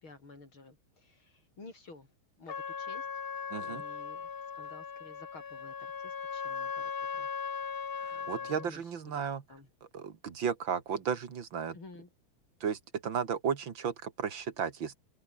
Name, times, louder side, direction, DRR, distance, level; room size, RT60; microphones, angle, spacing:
voice 1, 0.0-2.1 2.4-3.1 3.6-7.3 7.6-7.8 8.1-9.7 11.7-12.1, left 3 dB, 75° left, 6.7 m, -53 dB
Trumpet, 2.5-8.7, left 6 dB, 40° left, 0.9 m, -38 dB
voice 2, 3.5-3.8 8.0-9.4 9.9-11.8 12.6-15.0, right 7 dB, 65° right, 2.5 m, -34 dB
omnidirectional pair, 2.3 m